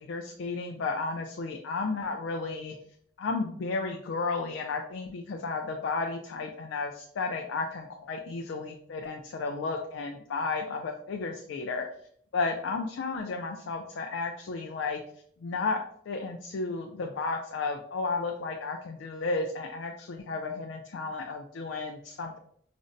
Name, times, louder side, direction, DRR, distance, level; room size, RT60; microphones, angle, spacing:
voice 1, 0.0-2.7 3.2-11.8 12.3-15.0 15.4-15.8 16.1-22.4, left 3 dB, 85° left, 3 dB, 0.4 m, -33 dB
5.0 x 2.1 x 2.5 m, 0.63 s
head